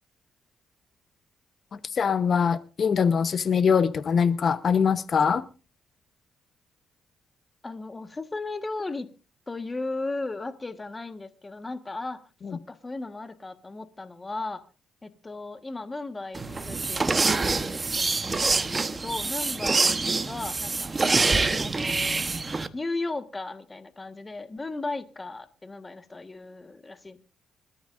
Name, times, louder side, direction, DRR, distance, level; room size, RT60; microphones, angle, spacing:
voice 1, 1.9-5.4 12.4-12.6, left 6 dB, 50° left, 0.9 m, -23 dB
voice 2, 7.6-9.1 9.5-14.7 15.0-18.2 18.5-20.0 20.2-20.9 21.6-22.2 22.7-27.2, left 3 dB, 20° left, 1.4 m, -36 dB
sound 1, 16.3-22.7, right 3 dB, 30° right, 1.0 m, -25 dB
25.5 x 13.5 x 2.5 m
cardioid pair, 90°, 0 cm